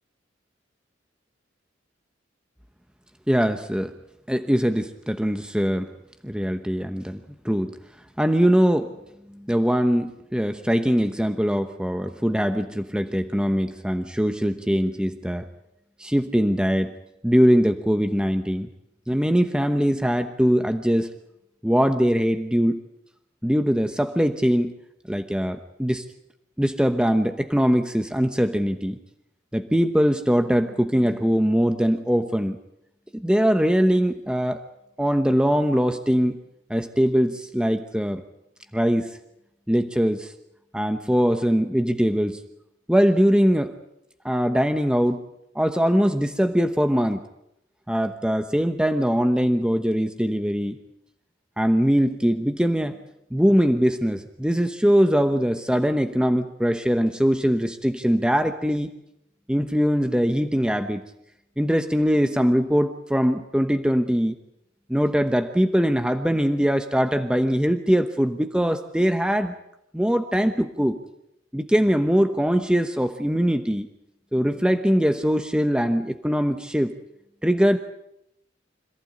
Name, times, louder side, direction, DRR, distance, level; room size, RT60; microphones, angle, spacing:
voice 1, 3.3-3.9 4.3-5.9 6.2-7.8 8.2-8.9 9.3-15.5 16.0-17.0 17.2-18.7 19.1-21.1 21.6-22.8 23.4-24.7 25.1-26.0 26.6-29.0 29.5-32.6 33.1-34.6 35.0-36.4 36.7-38.2 38.7-39.1 39.7-40.3 40.7-42.4 42.9-43.7 44.2-45.2 45.5-47.2 47.9-50.8 51.6-53.0 53.3-58.9 59.5-61.0 61.6-64.3 64.9-69.6 69.9-71.0 71.5-73.9 74.3-76.9 77.4-77.8, equal, 5° right, 8 dB, 1.0 m, -22 dB
26.0 x 15.0 x 8.8 m, 0.82 s
head